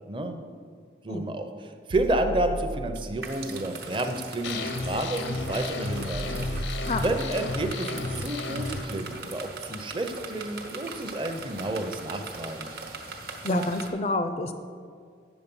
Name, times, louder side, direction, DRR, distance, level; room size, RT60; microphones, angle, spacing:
voice 1, 0.1-0.4 1.0-6.5 7.0-12.7, right 1 dB, 25° right, 6 dB, 0.6 m, -30 dB
sound 1, 1.9-3.2 5.0-5.2 6.1-7.4 9.3-9.4 9.9-10.0, right 1 dB, 75° right, 0.5 m, -35 dB
sound 2, 3.2-13.9, right 3 dB, 60° right, 1.0 m, -40 dB
sound 3, 4.4-8.8, left 2 dB, 85° left, 0.7 m, -33 dB
voice 2, 13.4-14.5, left 2 dB, 35° left, 8 dB, 0.4 m, -27 dB
8.4 x 7.0 x 5.4 m, 2.1 s
head